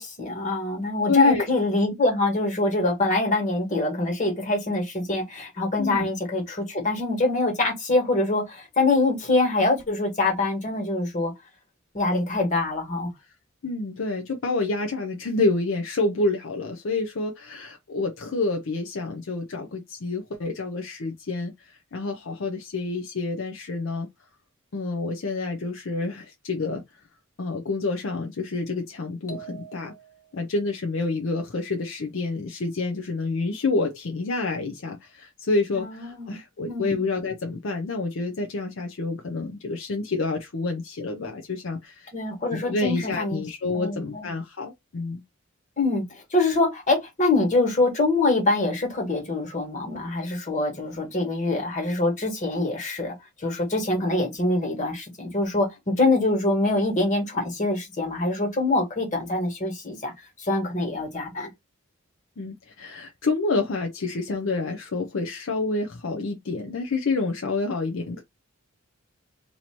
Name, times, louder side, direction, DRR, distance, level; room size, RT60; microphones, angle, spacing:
voice 1, 0.0-11.3 11.9-13.1 35.7-36.4 36.6-37.0 42.1-43.4 43.7-44.3 45.8-46.0 46.3-60.1 60.4-61.5, left 2 dB, 35° left, 1.6 m, -24 dB
voice 2, 1.1-1.5 5.8-6.1 13.6-24.1 24.7-26.8 27.4-29.9 30.3-42.1 42.5-45.2 62.4-68.2, left 3 dB, 60° left, 0.5 m, -28 dB
sound 1, 29.3-30.5, right 6 dB, 85° left, 1.1 m, -43 dB
2.9 x 2.7 x 4.3 m
head